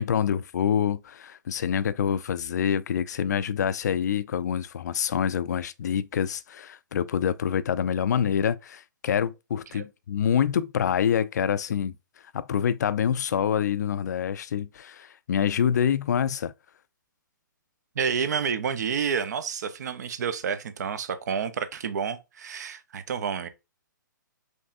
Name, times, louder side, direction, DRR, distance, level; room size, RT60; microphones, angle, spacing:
voice 1, 0.0-11.9 12.3-16.5, left 8 dB, 55° left, 0.4 m, -26 dB
voice 2, 18.0-23.5, right 7 dB, 55° right, 0.7 m, -29 dB
5.3 x 3.2 x 2.6 m
figure-of-eight pair, 125°, 11 cm